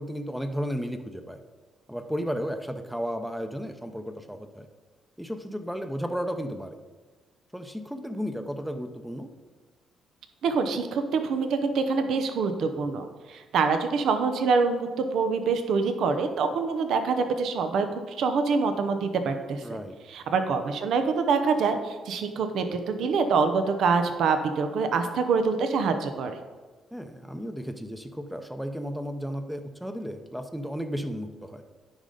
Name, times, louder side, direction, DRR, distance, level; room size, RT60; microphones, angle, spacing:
voice 1, 0.0-1.4 1.9-4.7 5.2-6.8 7.5-9.3 19.6-20.0 26.9-31.6, equal, ahead, 7 dB, 0.7 m, -34 dB
voice 2, 10.4-19.8 20.1-26.4, right 4 dB, 75° right, 8 dB, 0.8 m, -25 dB
10.0 x 5.2 x 3.9 m, 1.4 s
cardioid pair, 90°, 0 cm